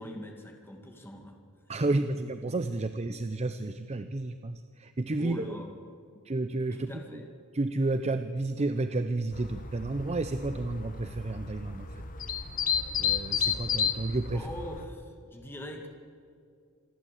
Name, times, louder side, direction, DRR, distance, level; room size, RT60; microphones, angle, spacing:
voice 1, 0.0-1.4 5.2-5.7 6.1-6.2 6.7-7.3 14.3-15.9, left 1 dB, 10° left, 2 dB, 2.1 m, -42 dB
voice 2, 1.7-5.6 6.2-7.2 7.5-11.9 13.0-14.5, right 2 dB, 30° right, 10 dB, 0.6 m, -31 dB
sound 1, 9.3-14.8, left 7 dB, 40° left, 1.3 m, -32 dB
26.5 x 11.5 x 8.3 m, 2.3 s
head